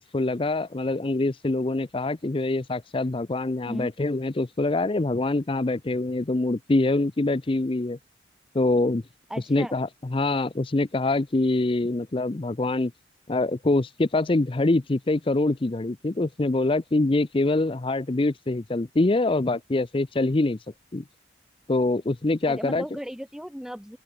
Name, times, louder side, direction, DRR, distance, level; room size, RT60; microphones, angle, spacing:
voice 1, 0.0-8.0 8.5-9.0 9.5-12.9 13.3-20.6 20.9-21.0 21.7-22.8, left 2 dB, 30° left, 0.5 m, -24 dB
voice 2, 9.3-9.8 22.5-24.0, equal, 5° right, 1.3 m, -36 dB
open air
head